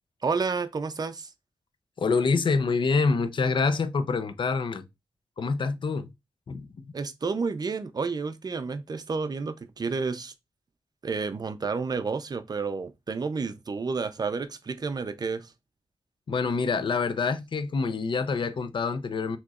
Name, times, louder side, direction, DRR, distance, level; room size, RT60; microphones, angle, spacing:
voice 1, 0.2-1.3 6.9-10.3 11.0-15.5, right 4 dB, 50° right, 0.6 m, -30 dB
voice 2, 2.0-4.9 5.4-6.1 6.5-6.9 16.3-19.4, left 4 dB, 65° left, 0.5 m, -26 dB
6.3 x 3.0 x 2.4 m
wide cardioid pair, 90°, 9 cm